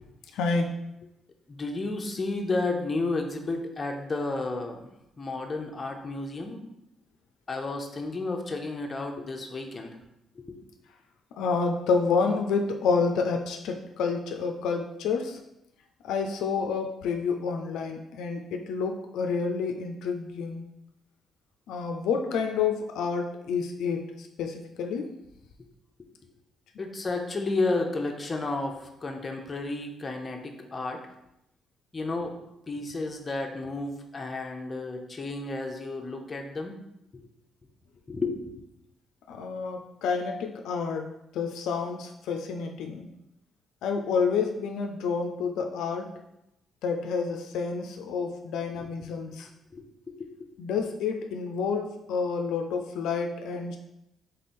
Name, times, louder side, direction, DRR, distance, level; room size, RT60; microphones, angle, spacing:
voice 1, 0.3-0.8 11.4-15.4 16.0-20.7 21.7-25.1 39.3-41.1 41.3-43.1 43.8-46.1 46.8-49.5 50.6-53.8, left 5 dB, 85° left, 4 dB, 0.4 m, -29 dB
voice 2, 1.5-4.9 5.2-6.7 7.5-10.0 10.4-10.6 26.8-31.0 31.9-32.4 32.7-36.7 37.1-37.2 38.1-38.5 48.8-48.9 49.7-50.5, left 3 dB, 30° left, 3 dB, 0.7 m, -32 dB
3.8 x 3.3 x 4.2 m, 0.85 s
cardioid pair, 90°, 0 cm